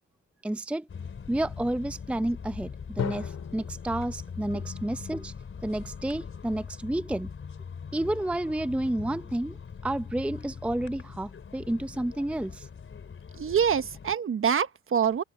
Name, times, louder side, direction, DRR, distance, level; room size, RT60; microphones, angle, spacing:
voice 1, 0.4-0.9 1.3-5.3 5.6-7.3 7.9-9.6 9.8-12.7, right 1 dB, 5° right, 0.7 m, -30 dB
sound 1, 0.9-14.1, left 6 dB, 45° left, 3.9 m, -41 dB
Drum, 3.0-6.7, left 8 dB, 60° left, 2.3 m, -39 dB
voice 2, 13.4-15.2, right 7 dB, 45° right, 1.2 m, -25 dB
cardioid pair, 90°, 30 cm